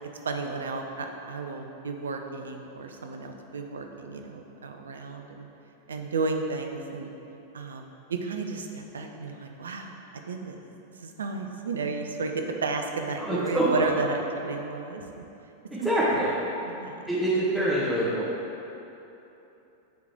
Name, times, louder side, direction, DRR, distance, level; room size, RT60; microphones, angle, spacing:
voice 1, 0.0-5.5 5.9-7.1 7.5-10.6 11.0-15.2 15.8-16.3 16.7-17.0 17.6-17.8, right 4 dB, 70° right, 4 dB, 0.6 m, -33 dB
voice 2, 13.2-13.6 15.7-16.3 17.1-18.2, right 1 dB, 5° right, -10 dB, 1.3 m, -25 dB
9.3 x 3.8 x 4.5 m, 3.0 s
figure-of-eight pair, 90°, 0 cm